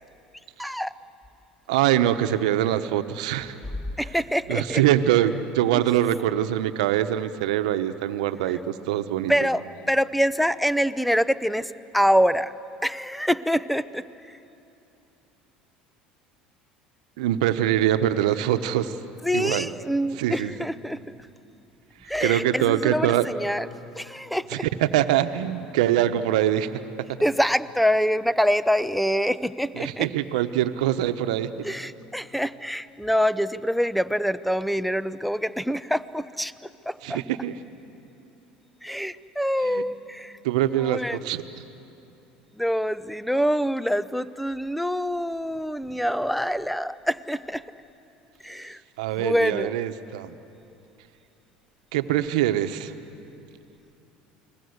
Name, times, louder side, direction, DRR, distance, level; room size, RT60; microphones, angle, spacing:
voice 1, 0.6-0.9 4.0-4.8 5.7-5.8 9.3-12.5 12.8-14.0 19.2-21.0 22.1-23.7 24.0-24.6 27.2-30.1 31.6-36.5 36.9-37.2 38.8-40.3 40.8-41.2 42.6-47.6 48.4-48.8 49.2-49.8, equal, ahead, 16 dB, 0.7 m, -25 dB
voice 2, 1.7-3.6 4.5-9.3 17.2-18.9 19.3-19.7 20.2-20.5 22.2-23.3 24.5-26.7 29.7-31.5 37.0-37.5 39.6-39.8 40.4-41.4 49.0-50.3 51.9-52.9, right 12 dB, 80° right, 9 dB, 1.1 m, -23 dB
29.5 x 21.0 x 8.1 m, 2.8 s
hypercardioid pair, 85°, 4 cm